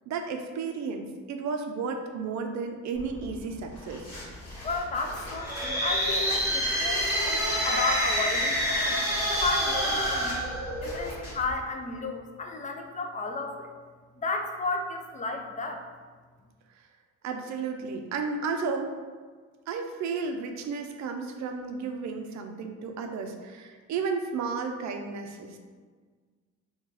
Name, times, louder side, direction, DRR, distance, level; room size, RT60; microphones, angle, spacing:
voice 1, 0.1-4.1 17.2-18.9 19.7-25.6, right 5 dB, 65° right, 4 dB, 0.5 m, -33 dB
sound 1, 2.9-11.5, left 1 dB, 55° left, 1.2 m, -42 dB
voice 2, 4.6-9.0 9.3-10.4 10.8-13.7 14.2-15.9, left 3 dB, 25° left, 3 dB, 0.4 m, -33 dB
sound 2, 5.3-11.2, equal, 10° right, 1.1 m, -27 dB
3.0 x 2.3 x 3.8 m, 1.5 s
cardioid pair, 90°, 30 cm